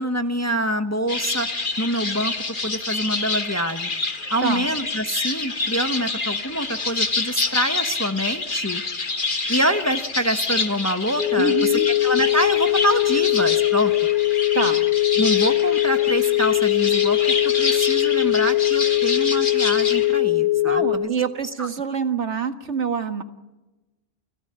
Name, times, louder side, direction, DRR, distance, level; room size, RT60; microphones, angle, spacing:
voice 1, 0.0-1.5 1.8-2.3 2.6-3.9 4.3-8.8 9.5-13.9 15.2-21.2 21.6-21.7, right 1 dB, 15° left, 8 dB, 1.1 m, -26 dB
sound 1, 1.1-20.2, left 3 dB, 45° left, 1.7 m, -28 dB
sound 2, 11.2-21.0, left 16 dB, 35° right, 2.0 m, -20 dB
voice 2, 11.4-11.9 14.5-14.8 20.6-23.2, right 6 dB, 70° right, 8 dB, 1.9 m, -26 dB
29.0 x 17.0 x 8.8 m, 1.1 s
omnidirectional pair, 1.2 m